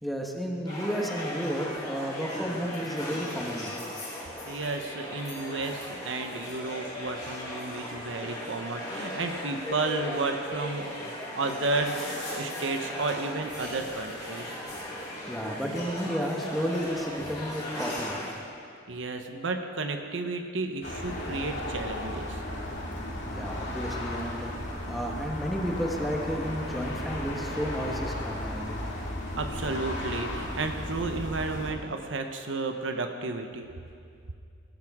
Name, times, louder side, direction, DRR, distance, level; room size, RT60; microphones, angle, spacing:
voice 1, 0.0-3.8 13.8-14.0 15.3-18.3 23.3-24.5 24.9-28.8, equal, ahead, 0 dB, 1.2 m, -32 dB
sound 1, 0.7-18.3, left 1 dB, 20° left, 3.9 m, -37 dB
voice 2, 4.5-14.5 18.9-22.4 29.3-33.7, right 3 dB, 80° right, 5 dB, 1.0 m, -32 dB
sound 2, 20.8-31.7, left 1 dB, 60° left, 2.4 m, -35 dB
18.0 x 14.0 x 3.7 m, 2.3 s
head